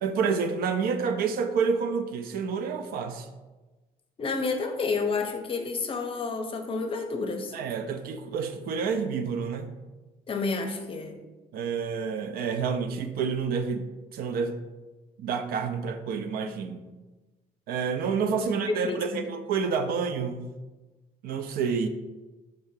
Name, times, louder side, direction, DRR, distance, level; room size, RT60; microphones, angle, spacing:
voice 1, 0.0-3.3 7.5-9.7 11.5-13.9 14.1-14.6 15.2-16.8 17.7-20.5 21.2-21.9, right 5 dB, 75° right, 8 dB, 0.4 m, -29 dB
voice 2, 4.2-7.5 10.3-11.2 18.7-19.2, left 4 dB, 35° left, 5 dB, 0.6 m, -30 dB
4.8 x 3.7 x 2.7 m, 1.2 s
cardioid pair, 105°, 16 cm